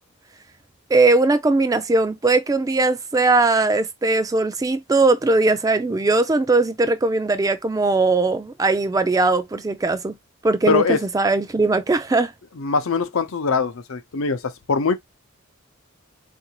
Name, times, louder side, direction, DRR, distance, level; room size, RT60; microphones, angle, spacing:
voice 1, 0.9-10.1 10.4-12.3, right 3 dB, 15° right, 0.3 m, -19 dB
voice 2, 10.7-11.0 12.6-14.9, left 4 dB, 85° left, 0.6 m, -22 dB
3.6 x 2.6 x 2.9 m
head